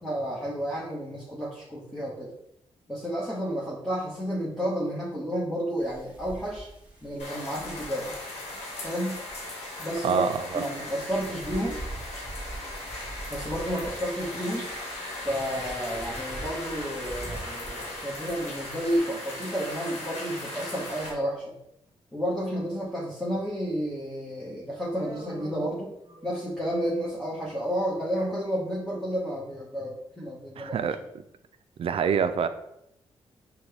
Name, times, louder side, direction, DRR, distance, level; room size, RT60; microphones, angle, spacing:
voice 1, 0.0-2.3 2.9-6.7 7.0-8.1 8.8-9.2 9.8-10.3 10.5-11.8 13.3-14.7 15.2-21.5 22.1-25.9 26.2-30.8, equal, 5° left, -7 dB, 1.3 m, -31 dB
Wind, 5.8-19.0, right 2 dB, 10° right, 1.7 m, -44 dB
sound 1, 7.2-21.1, left 2 dB, 90° left, 1.1 m, -38 dB
voice 2, 10.0-10.6 30.6-31.2 31.8-32.5, right 7 dB, 60° right, 10 dB, 0.4 m, -26 dB
Human voice, 24.9-26.7, right 2 dB, 35° right, 1.3 m, -46 dB
6.0 x 2.3 x 3.4 m, 0.80 s
cardioid pair, 70°, 11 cm